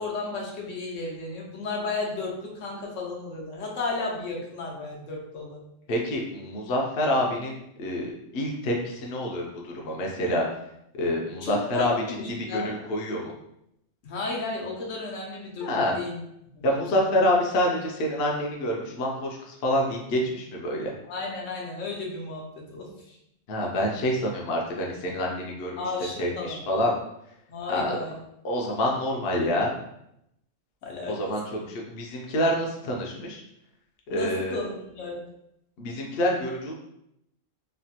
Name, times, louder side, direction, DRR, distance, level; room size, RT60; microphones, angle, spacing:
voice 1, 0.0-5.6 11.4-12.7 14.0-16.2 16.5-16.8 21.1-23.2 25.8-26.6 27.5-28.2 30.8-31.6 34.1-35.2, left 3 dB, 85° left, -2 dB, 1.1 m, -33 dB
voice 2, 5.9-10.5 10.9-13.3 15.6-16.0 16.6-20.9 23.5-25.8 26.2-27.0 27.7-28.0 28.4-29.7 31.1-33.4 34.1-34.6 35.8-36.7, left 1 dB, 60° left, -1 dB, 0.8 m, -27 dB
3.2 x 2.2 x 2.7 m, 0.80 s
omnidirectional pair, 1.3 m